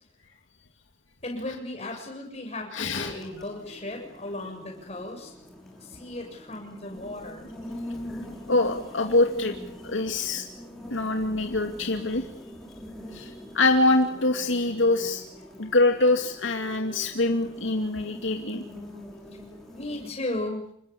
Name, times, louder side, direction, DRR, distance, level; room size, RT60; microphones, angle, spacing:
voice 1, 1.2-5.3 5.8-7.5 19.3-19.4 19.7-20.7, left 1 dB, 35° left, 1 dB, 7.4 m, -36 dB
voice 2, 2.7-3.2 7.7-7.8 8.5-9.5 9.8-10.5 10.9-12.3 13.1-15.2 15.6-18.6, left 2 dB, 80° left, 4 dB, 2.5 m, -24 dB
sound 1, 3.1-20.1, left 1 dB, ahead, 5.8 m, -43 dB
28.0 x 21.0 x 8.5 m, 0.72 s
head